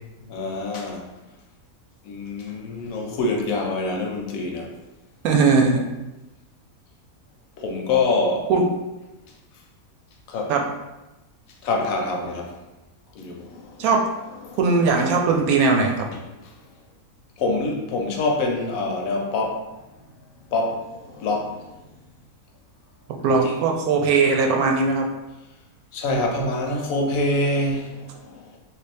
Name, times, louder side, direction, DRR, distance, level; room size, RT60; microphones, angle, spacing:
voice 1, 0.2-1.1 2.0-4.7 7.6-8.5 10.3-10.5 11.6-12.5 13.1-13.8 14.4-14.6 16.1-16.5 17.4-19.7 20.5-21.7 23.4-23.5 25.9-28.6, left 2 dB, 75° left, 1 dB, 1.0 m, -26 dB
voice 2, 5.2-5.8 8.5-8.6 10.5-10.6 13.8-14.0 14.6-16.1 23.2-25.1, right 4 dB, 80° right, 1 dB, 1.1 m, -19 dB
3.3 x 2.4 x 3.3 m, 1.0 s
omnidirectional pair, 1.5 m